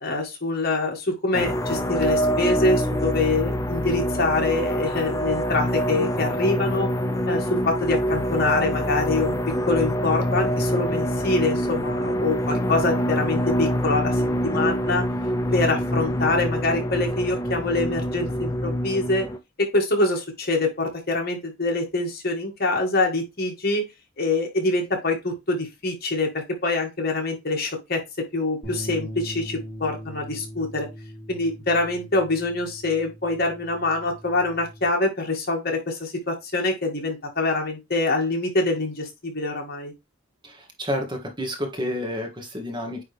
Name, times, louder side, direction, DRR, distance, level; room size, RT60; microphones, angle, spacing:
voice 1, 0.0-6.9 7.3-9.4 9.7-15.0 15.5-19.3 19.6-23.8 24.2-26.3 26.6-28.0 28.3-30.9 31.3-39.9, left 2 dB, 50° left, 1 dB, 2.0 m, -25 dB
sound 1, 1.3-19.4, equal, 15° left, 0.6 m, -25 dB
sound 2, 28.6-34.9, equal, 35° left, 4.5 m, -40 dB
voice 2, 40.4-43.0, left 1 dB, 25° right, 4 dB, 1.3 m, -30 dB
9.1 x 3.2 x 3.4 m, 0.22 s
head